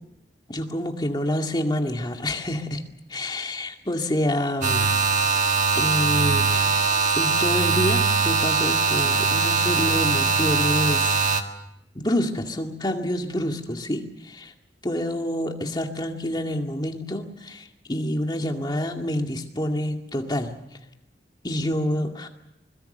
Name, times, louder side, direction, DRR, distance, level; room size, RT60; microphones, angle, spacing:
voice 1, 0.5-2.8 3.1-4.9 5.7-11.5 11.9-14.5 14.8-20.6 21.4-22.3, left 1 dB, 25° left, 4 dB, 2.1 m, -27 dB
sound 1, 4.6-11.4, right 4 dB, 45° right, 1.8 m, -21 dB
24.5 x 21.5 x 6.8 m, 0.83 s
head